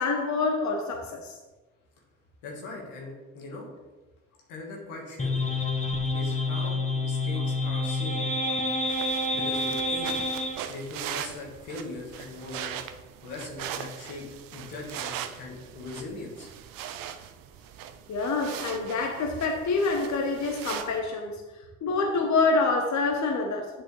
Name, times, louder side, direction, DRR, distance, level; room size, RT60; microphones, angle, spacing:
voice 1, 0.0-1.4 18.1-21.4 21.8-23.8, left 3 dB, 55° left, 3 dB, 1.0 m, -26 dB
voice 2, 2.4-3.7 4.5-5.4 6.1-8.2 9.3-10.1 10.4-12.7 13.2-14.2 14.5-16.5, left 2 dB, 85° left, -1 dB, 1.6 m, -40 dB
sound 1, 5.2-10.6, left 2 dB, 20° left, 1.4 m, -28 dB
sound 2, 8.9-21.0, right 10 dB, 80° right, 0.6 m, -40 dB
7.7 x 6.1 x 3.2 m, 1.2 s
hypercardioid pair, 45°, 33 cm